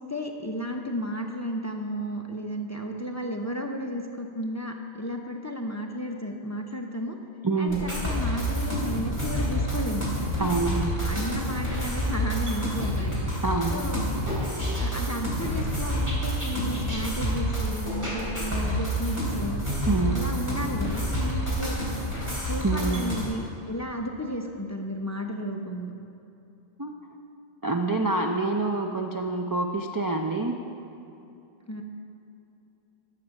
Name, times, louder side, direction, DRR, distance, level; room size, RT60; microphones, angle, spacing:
voice 1, 0.1-7.2 7.6-10.1 11.0-13.2 13.7-14.0 14.6-19.6 20.1-21.8 22.3-25.9 31.7-31.8, equal, 20° left, 3 dB, 0.5 m, -33 dB
voice 2, 7.4-7.8 10.4-11.0 13.4-13.8 19.9-20.2 22.6-23.0 26.8-26.9 27.6-30.5, right 3 dB, 30° right, 2 dB, 0.3 m, -26 dB
sound 1, 7.7-23.2, equal, 15° right, 2.9 m, -28 dB
11.5 x 7.2 x 6.4 m, 2.8 s
omnidirectional pair, 1.1 m